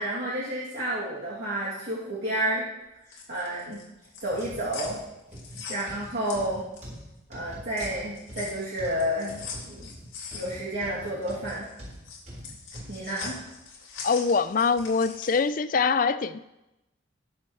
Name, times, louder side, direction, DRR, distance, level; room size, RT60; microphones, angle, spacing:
voice 1, 0.0-2.7 3.3-3.8 4.2-5.0 5.7-6.6 7.3-9.4 9.7-9.9 10.3-11.6 12.9-13.4, right 1 dB, 60° right, -8 dB, 2.7 m, -30 dB
sound 1, 2.9-7.0 7.4-15.5, left 5 dB, 90° left, 3.5 m, -42 dB
sound 2, 4.3-13.4 14.0-14.1 14.8-14.9, equal, 35° right, 5.0 m, -43 dB
voice 2, 14.0-16.4, left 5 dB, 45° left, 14 dB, 0.4 m, -24 dB
21.0 x 7.4 x 3.2 m, 0.94 s
head